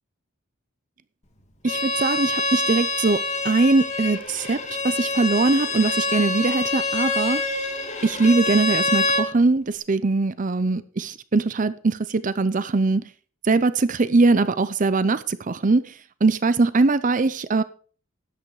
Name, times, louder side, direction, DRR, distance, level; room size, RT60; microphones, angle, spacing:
Bowed string instrument, 1.6-9.3, left 2 dB, 35° left, 2.1 m, -26 dB
voice 1, 1.6-3.2 3.4-4.6 4.8-7.4 8.0-13.0 13.5-15.8 16.2-17.6, right 3 dB, 40° right, 15 dB, 0.6 m, -21 dB
12.5 x 8.6 x 4.8 m, 0.40 s
head